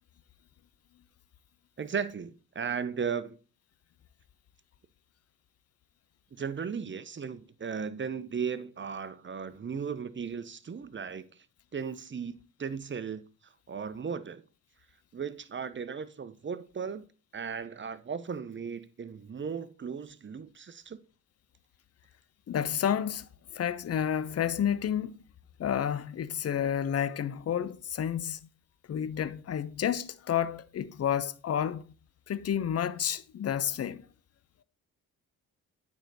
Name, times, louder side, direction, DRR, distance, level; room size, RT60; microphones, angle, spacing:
voice 1, 1.8-3.4 6.3-11.5 11.7-14.4 15.1-17.1 17.3-21.0, right 6 dB, 30° right, 0.9 m, -36 dB
voice 2, 22.5-23.3 23.5-25.2 25.6-28.4 28.9-31.9 32.3-34.0, left 9 dB, 40° left, 0.7 m, -30 dB
8.8 x 4.9 x 4.0 m
hypercardioid pair, 50°, 39 cm